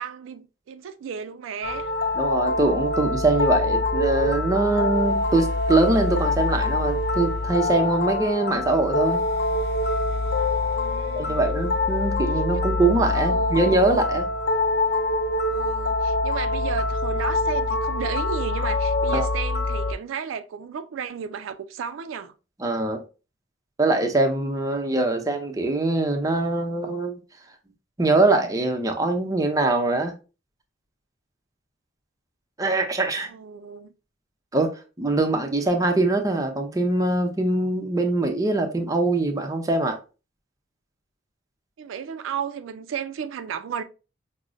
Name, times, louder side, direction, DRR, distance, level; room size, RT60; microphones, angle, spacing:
voice 1, 0.0-1.9 10.7-11.5 13.1-13.6 15.5-22.3 33.3-33.9 41.8-43.8, right 7 dB, 85° right, 0.3 m, -34 dB
sound 1, 1.6-19.9, left 2 dB, 55° left, 0.4 m, -25 dB
voice 2, 2.1-9.2 11.2-14.3 19.1-19.3 22.6-23.0 23.8-27.1 28.0-30.1 32.6-33.3 34.5-40.0, right 2 dB, 20° right, 0.5 m, -23 dB
4.9 x 2.0 x 2.5 m
head